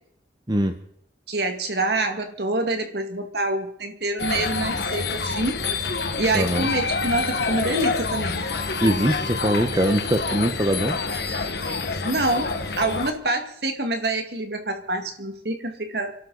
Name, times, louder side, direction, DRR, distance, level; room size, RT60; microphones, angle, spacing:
voice 1, 1.3-5.6 6.1-8.4 12.0-16.1, right 2 dB, 60° right, 6 dB, 2.1 m, -26 dB
sound 1, 4.2-13.1, left 4 dB, 60° left, 1.5 m, -27 dB
voice 2, 6.3-6.7 8.8-11.0, right 1 dB, 20° right, 6 dB, 1.0 m, -22 dB
28.5 x 12.0 x 4.0 m, 0.71 s
head